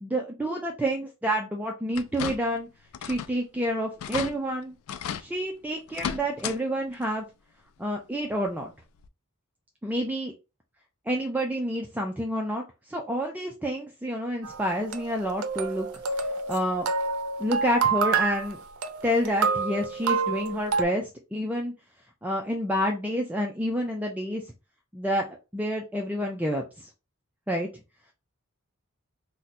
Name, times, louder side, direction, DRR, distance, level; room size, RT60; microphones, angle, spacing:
voice 1, 0.0-2.7 3.0-4.8 5.2-7.3 7.8-8.7 9.8-10.3 11.1-15.9 16.5-16.9 17.4-18.6 19.0-21.7 22.2-24.4 24.9-26.9 27.5-27.7, equal, 5° right, 1 dB, 0.4 m, -29 dB
sound 1, 1.9-2.6 2.9-3.4 3.7-3.8 4.0-4.3 4.9-5.3 5.9-6.6 6.9-7.0 8.4-8.5 9.0-9.1, left 8 dB, 70° left, 0.3 m, -34 dB
sound 2, 14.4-20.8, right 5 dB, 90° right, 0.5 m, -28 dB
2.6 x 2.2 x 4.0 m, 0.27 s
head